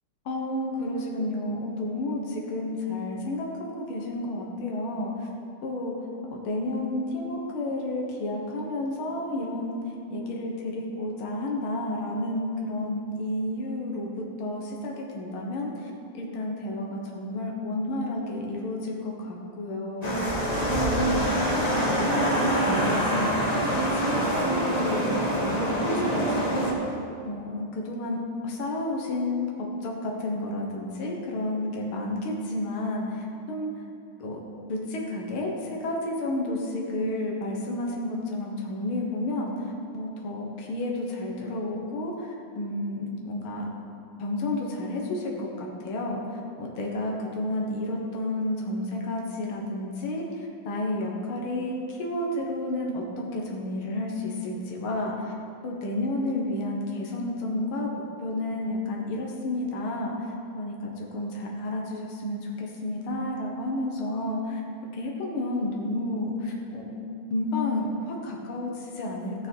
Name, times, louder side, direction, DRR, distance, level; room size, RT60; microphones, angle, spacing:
voice 1, 0.3-5.3 5.6-9.8 10.1-20.3 20.6-21.2 21.6-25.6 25.9-27.0 27.2-33.7 34.2-34.4 34.7-43.7 44.2-55.1 55.6-57.9 58.2-64.6 64.9-66.9 67.3-69.5, left 1 dB, 75° left, -1 dB, 2.2 m, -31 dB
sound 1, 20.0-26.7, right 1 dB, 20° left, 1.5 m, -25 dB
18.0 x 6.6 x 4.7 m, 2.5 s
omnidirectional pair, 2.4 m